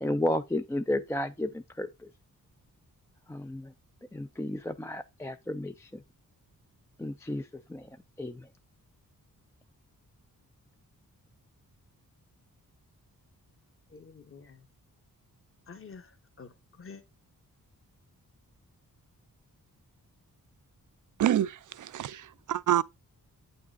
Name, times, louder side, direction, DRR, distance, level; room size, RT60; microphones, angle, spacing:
voice 1, 0.0-2.1 3.3-3.7 4.1-6.0 7.0-7.9 8.2-8.5, left 1 dB, 10° left, 0.3 m, -33 dB
voice 2, 13.9-14.6 15.7-17.0, left 5 dB, 35° left, 1.2 m, -49 dB
voice 3, 21.2-22.8, right 11 dB, 60° right, 0.5 m, -27 dB
9.0 x 6.0 x 2.4 m
wide cardioid pair, 165°, 35 cm